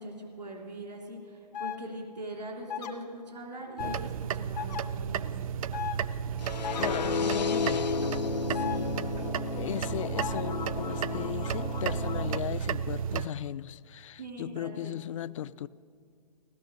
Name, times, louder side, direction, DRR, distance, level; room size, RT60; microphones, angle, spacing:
voice 1, 0.0-5.4 8.5-9.1 14.2-15.0, right 1 dB, 85° right, 1 dB, 3.1 m, -42 dB
sound 1, 1.5-1.8 2.7-2.9 3.8-4.0 4.5-4.8 5.7-6.0 6.6-6.9 8.5-8.8 10.2-10.4, left 9 dB, 65° left, 1.4 m, -35 dB
sound 2, 3.8-13.3, right 8 dB, 55° right, 0.5 m, -33 dB
sound 3, 6.4-12.4, left 6 dB, 80° left, 0.8 m, -33 dB
voice 2, 6.7-7.9 9.6-15.7, left 11 dB, 50° left, 18 dB, 0.4 m, -37 dB
15.5 x 12.5 x 6.4 m, 2.1 s
figure-of-eight pair, 130°, 21 cm